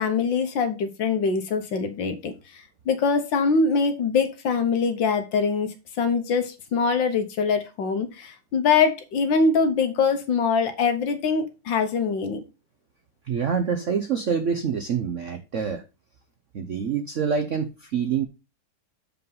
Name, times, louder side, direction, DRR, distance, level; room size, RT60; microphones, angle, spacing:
voice 1, 0.0-12.5, left 5 dB, 70° left, 1.8 m, -23 dB
voice 2, 13.3-15.8 16.5-18.3, right 6 dB, 65° right, 0.7 m, -26 dB
6.8 x 5.2 x 5.4 m
omnidirectional pair, 2.2 m